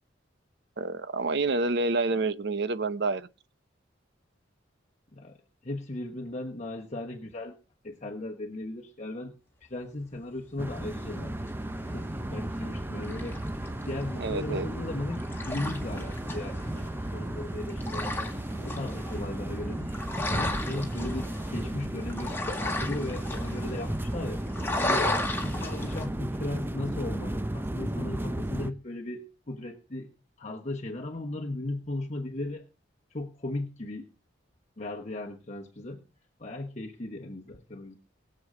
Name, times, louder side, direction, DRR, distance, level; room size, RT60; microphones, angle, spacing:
voice 1, 0.8-3.3 14.2-14.7, right 3 dB, 60° right, 0.8 m, -28 dB
voice 2, 5.6-7.6 7.8-9.4 9.6-11.5 11.9-13.4 13.8-18.3 18.6-20.0 20.3-24.4 24.8-25.1 25.4-30.1 30.4-32.6 33.1-34.1 34.8-36.0 36.4-38.0, left 2 dB, 40° left, 1.2 m, -37 dB
sound 1, 10.6-28.7, right 1 dB, 10° right, 0.6 m, -34 dB
sound 2, 10.7-26.1, left 2 dB, 10° left, 1.8 m, -36 dB
21.0 x 7.8 x 3.9 m
head